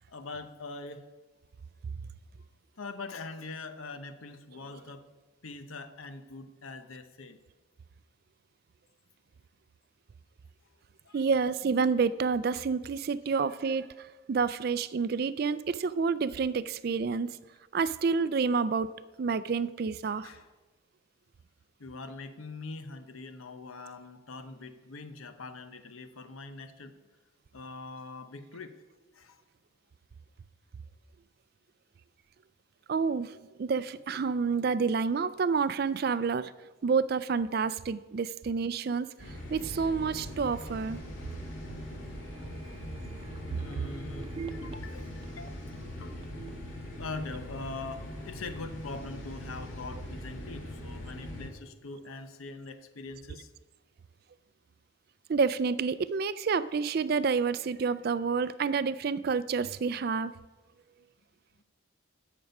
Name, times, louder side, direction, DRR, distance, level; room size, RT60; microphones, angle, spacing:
voice 1, 0.1-1.1 2.8-5.0 5.4-7.4 11.0-11.2 20.2-20.5 21.8-27.0 27.5-28.8 29.1-29.4 39.0-39.1 41.8-41.9 43.0-43.2 43.5-46.2 47.0-53.5, left 3 dB, 90° left, 9 dB, 0.9 m, -43 dB
voice 2, 11.1-17.4 17.7-18.9 19.2-20.3 32.9-36.5 36.8-39.1 39.5-41.0 55.3-60.3, right 5 dB, 50° right, 16 dB, 0.3 m, -29 dB
sound 1, 39.2-51.5, left 1 dB, 70° left, 2.1 m, -41 dB
sound 2, 42.2-47.9 48.2-48.3, right 5 dB, 25° right, 0.7 m, -47 dB
15.0 x 6.1 x 5.4 m, 1.2 s
head